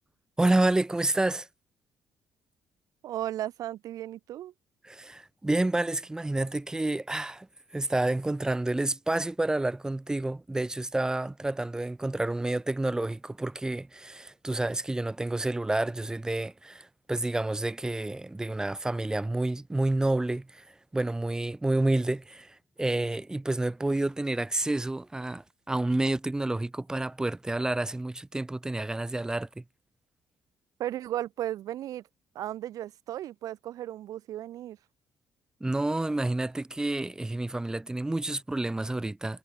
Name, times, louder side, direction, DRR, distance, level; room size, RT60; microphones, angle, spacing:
voice 1, 0.4-1.5 4.8-7.5 7.7-29.6 35.6-39.4, right 2 dB, 10° right, 5.7 m, -29 dB
voice 2, 3.0-4.5 30.8-32.0 32.3-34.8, right 13 dB, 70° right, 6.6 m, -35 dB
cardioid pair, 120°, 6 cm